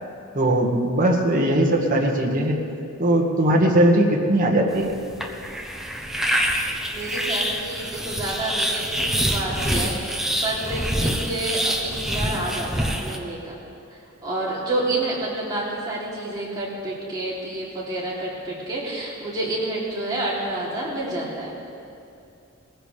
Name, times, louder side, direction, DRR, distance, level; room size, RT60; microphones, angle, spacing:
voice 1, 0.3-2.6 3.0-5.0, right 1 dB, 40° right, 0 dB, 1.7 m, -19 dB
sound 1, 4.7-13.2, equal, ahead, 0.8 m, -26 dB
voice 2, 6.9-13.6 14.2-21.5, right 2 dB, 20° right, -7 dB, 3.1 m, -29 dB
20.0 x 15.0 x 3.4 m, 2.6 s
head